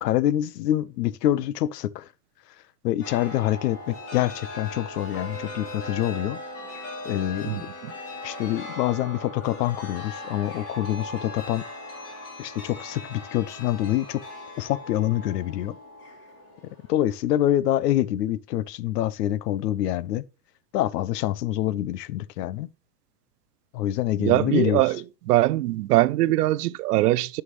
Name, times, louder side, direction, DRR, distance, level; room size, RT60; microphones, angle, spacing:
voice 1, 0.0-2.1 2.8-6.4 7.0-7.7 8.2-11.6 12.4-14.2 14.6-15.8 16.9-20.2 20.7-22.7 23.7-24.8, left 13 dB, 75° left, 0.7 m, -26 dB
Chime, 3.0-17.2, left 2 dB, 30° left, 3.0 m, -39 dB
voice 2, 7.4-7.9 24.2-25.0 25.3-27.4, right 17 dB, 75° right, 0.6 m, -22 dB
9.5 x 5.8 x 3.1 m
supercardioid pair, 155°, 48 cm